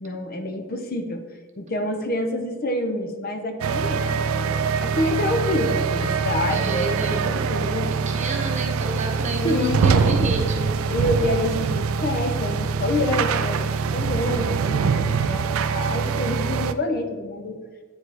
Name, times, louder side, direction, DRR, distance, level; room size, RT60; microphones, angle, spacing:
voice 1, 0.0-1.2 1.6-7.9 9.4-10.3 10.9-17.6, left 1 dB, 45° left, 6 dB, 0.6 m, -27 dB
sound 1, 3.6-16.7, right 5 dB, 80° right, 0.3 m, -24 dB
voice 2, 6.5-7.6 8.1-10.8, right 2 dB, 35° right, 3 dB, 0.8 m, -30 dB
8.7 x 4.8 x 3.3 m, 1.4 s
head